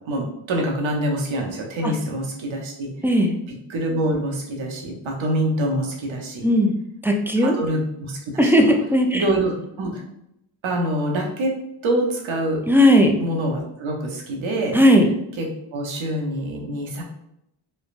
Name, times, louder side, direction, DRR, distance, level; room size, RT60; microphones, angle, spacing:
voice 1, 0.1-2.9 3.7-6.5 7.4-8.5 9.1-9.5 9.8-10.0 10.6-11.5 11.8-12.6 13.2-14.8 15.4-17.0, right 1 dB, 75° right, 1 dB, 0.8 m, -25 dB
voice 2, 7.0-7.5 8.4-9.2 12.7-13.1 14.7-15.1, equal, 5° right, 3 dB, 0.4 m, -16 dB
3.2 x 2.2 x 2.4 m, 0.80 s
cardioid pair, 40°, 48 cm